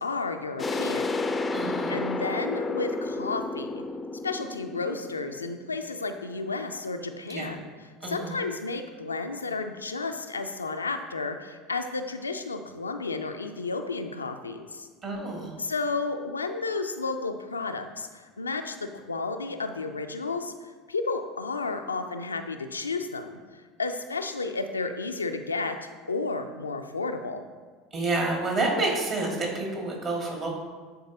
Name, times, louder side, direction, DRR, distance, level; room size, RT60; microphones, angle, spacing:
voice 1, 0.0-1.2 1.9-3.8 4.2-7.6 8.1-14.9 15.6-27.4, left 3 dB, 85° left, 6 dB, 0.3 m, -32 dB
sound 1, 0.6-6.1, left 3 dB, 20° left, 0.4 m, -31 dB
voice 2, 1.5-2.0 7.3-7.5 8.0-8.4 15.0-15.5 27.9-30.6, right 2 dB, 35° right, -1 dB, 1.7 m, -29 dB
9.4 x 4.0 x 2.7 m, 1.5 s
figure-of-eight pair, 70°, 0 cm